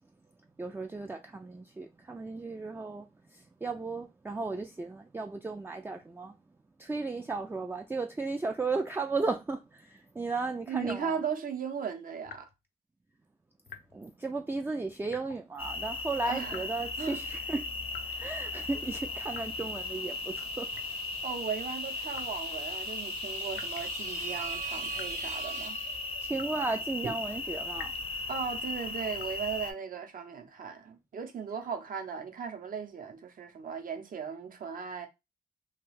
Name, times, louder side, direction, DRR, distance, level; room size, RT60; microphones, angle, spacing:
voice 1, 0.6-6.4 6.8-11.2 13.9-17.7 18.2-20.7 26.2-27.9, right 3 dB, 10° right, 0.3 m, -35 dB
voice 2, 10.7-12.5 16.2-16.7 17.0-17.2 18.1-18.5 21.2-25.8 27.0-27.2 28.3-35.1, right 6 dB, 55° right, 0.7 m, -37 dB
sound 1, 10.8-11.2 12.2-12.5 13.7-14.0 15.1-15.5 16.5-16.9 17.9-18.2 19.3-19.7 20.7-21.1 22.1-22.4 23.5-24.0 24.9-25.2 26.3-26.7 27.7-28.1 29.1-29.4, left 7 dB, 80° left, 0.5 m, -48 dB
sound 2, 15.6-29.7, left 3 dB, 35° left, 0.5 m, -37 dB
sound 3, 18.6-26.6, right 5 dB, 90° right, 1.0 m, -43 dB
2.4 x 2.3 x 3.2 m
cardioid pair, 65°, 17 cm